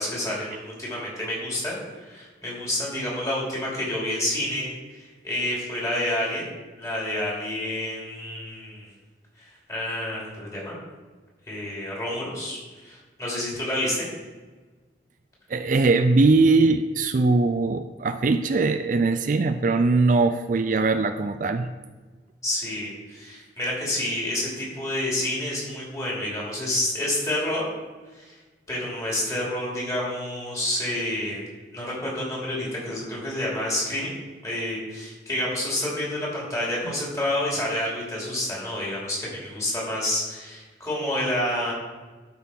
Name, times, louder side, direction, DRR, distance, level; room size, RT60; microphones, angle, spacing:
voice 1, 0.0-4.7 5.2-6.5 6.8-8.9 9.4-10.8 11.5-14.1 22.4-27.6 28.1-28.3 28.7-31.4 31.7-34.1 34.4-41.7, left 1 dB, 20° left, -5 dB, 3.2 m, -29 dB
voice 2, 15.5-21.7, right 3 dB, 45° right, 9 dB, 0.4 m, -21 dB
12.5 x 5.5 x 4.5 m, 1.3 s
head